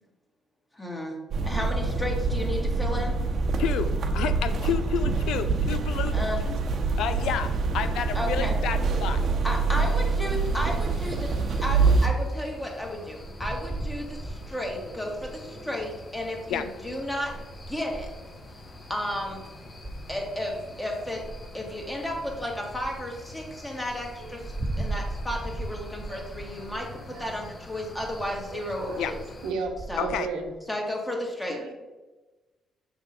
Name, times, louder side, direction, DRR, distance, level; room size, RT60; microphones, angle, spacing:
voice 1, 0.7-1.2 1.4-3.2 6.1-6.4 8.1-8.6 9.4-11.3 11.6-15.9 16.1-17.3 17.7-18.1 18.9-19.4 20.1-21.2 21.5-29.2 29.9-30.1 30.7-31.6, left 1 dB, 15° left, 0 dB, 1.9 m, -33 dB
sound 1, 1.3-12.1, right 4 dB, 55° right, 0.9 m, -25 dB
voice 2, 3.6-6.2 6.5-6.6 7.0-9.2 16.5-16.6 29.0-29.1 30.0-30.3, left 8 dB, 85° left, 10 dB, 0.5 m, -30 dB
sound 2, 9.8-29.5, left 2 dB, 35° left, 1.1 m, -45 dB
sound 3, 12.7-15.5 16.5-18.7 19.2-19.4 19.8-20.6 21.0-22.4 22.7-23.0 23.6-23.7 23.8-29.4 29.6-30.5, right 2 dB, 20° right, 0.5 m, -38 dB
voice 3, 28.5-29.0 29.4-29.7 30.0-30.5 31.5-31.7, right 4 dB, 90° right, 2 dB, 1.1 m, -34 dB
6.9 x 3.5 x 5.3 m, 1.2 s
cardioid pair, 90°, 0 cm